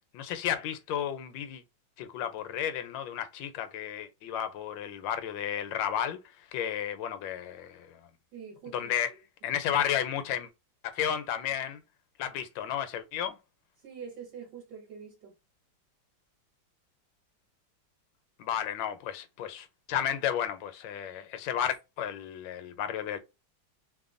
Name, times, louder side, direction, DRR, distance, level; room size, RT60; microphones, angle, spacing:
voice 1, 0.1-1.6 2.0-8.1 8.7-9.1 9.4-10.5 10.9-11.8 12.2-13.4 18.4-23.2, left 9 dB, 75° left, 1.3 m, -33 dB
voice 2, 8.3-9.2 13.8-15.3, right 6 dB, 65° right, 1.5 m, -45 dB
3.3 x 2.1 x 2.4 m
omnidirectional pair, 2.1 m